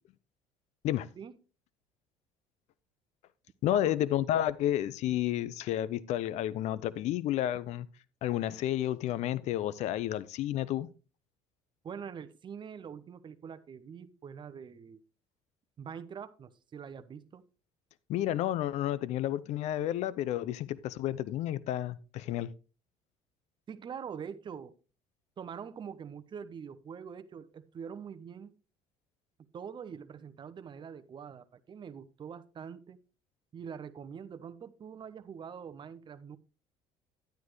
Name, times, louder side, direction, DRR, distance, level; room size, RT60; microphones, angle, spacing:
voice 1, 3.6-7.9 8.2-10.9 18.1-22.5, left 12 dB, 65° left, 0.6 m, -31 dB
voice 2, 11.8-15.0 15.8-17.4 23.7-24.7 25.4-28.5 29.5-33.0 33.5-36.4, right 7 dB, 40° right, 0.8 m, -44 dB
10.5 x 9.5 x 3.1 m
supercardioid pair, 85°, 13 cm